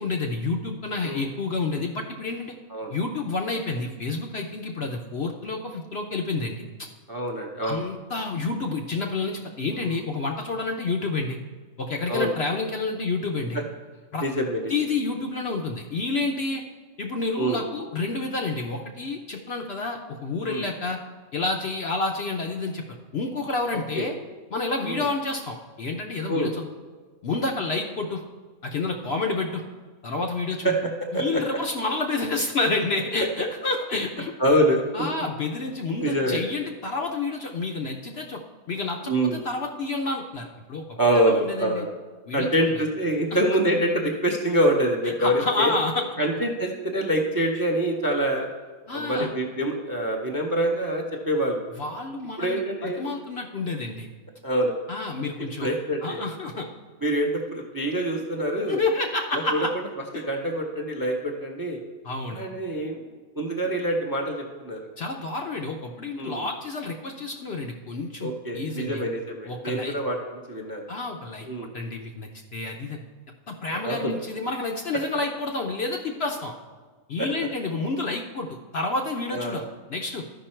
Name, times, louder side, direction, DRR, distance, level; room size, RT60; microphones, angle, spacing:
voice 1, 0.0-2.5 2.9-6.9 7.6-11.4 11.8-13.6 14.1-14.3 14.7-16.6 17.0-21.0 21.3-24.1 24.5-26.7 27.2-28.2 28.6-29.6 30.0-30.7 31.1-34.3 34.9-38.4 38.7-41.9 42.3-42.7 45.0-46.1 48.9-49.3 51.8-54.1 54.9-55.7 56.0-56.7 58.7-59.7 60.1-60.2 62.0-62.5 65.0-69.0 69.5-69.9 70.9-71.5 71.7-73.0 73.5-76.5 77.1-80.3, left 3 dB, 55° left, 2 dB, 0.7 m, -29 dB
voice 2, 7.1-7.8 9.7-10.0 12.1-12.3 13.5-13.6 14.2-14.7 17.4-17.6 20.4-20.6 23.9-24.1 24.8-25.0 26.3-26.5 30.6-30.8 31.1-31.4 34.4-34.8 36.0-36.4 39.1-39.4 40.9-42.0 42.3-45.7 46.2-48.5 48.9-51.6 52.4-53.0 54.4-54.7 55.6-56.2 57.0-58.8 59.3-59.7 60.3-61.8 62.3-63.0 63.4-64.8 66.2-66.4 68.2-70.2 70.5-70.8 71.5-71.7 73.7-74.2 77.2-77.3 79.3-79.7, right 1 dB, 20° right, 2 dB, 0.5 m, -25 dB
12.5 x 5.4 x 4.4 m, 1.4 s
omnidirectional pair, 1.5 m